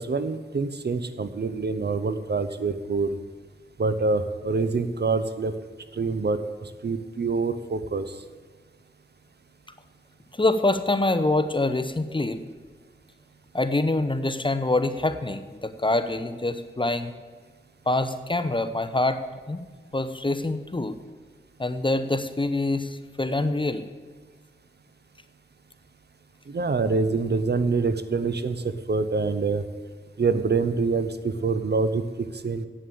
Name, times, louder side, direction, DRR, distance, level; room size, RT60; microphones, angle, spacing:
voice 1, 0.0-3.1 3.8-5.5 5.9-8.1 26.5-29.6 30.2-32.0 32.4-32.7, right 4 dB, 55° right, 11 dB, 0.8 m, -26 dB
voice 2, 10.4-12.4 13.5-17.1 17.9-19.2 19.5-19.6 19.9-21.0 21.6-23.8, left 2 dB, 25° left, 10 dB, 0.8 m, -25 dB
8.6 x 7.6 x 8.6 m, 1.4 s
cardioid pair, 45°, 21 cm